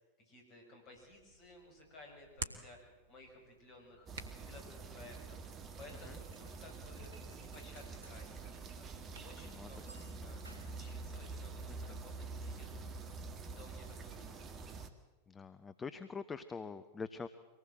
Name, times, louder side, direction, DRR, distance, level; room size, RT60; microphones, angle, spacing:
voice 1, 0.0-4.1 4.3-8.9 9.2-13.0 13.4-14.9, left 2 dB, 35° left, 2 dB, 7.2 m, -57 dB
Hands, 0.9-9.3, right 4 dB, 70° right, 1.7 m, -53 dB
sound 1, 4.1-14.9, right 4 dB, 30° right, 1.8 m, -47 dB
sound 2, 5.7-6.6 7.0-8.3 8.6-8.7 9.7-11.2, right 1 dB, 85° left, 4.8 m, -62 dB
voice 2, 15.3-17.3, left 5 dB, 15° left, 12 dB, 0.8 m, -44 dB
24.5 x 19.0 x 7.8 m, 1.2 s
figure-of-eight pair, 90°, 0 cm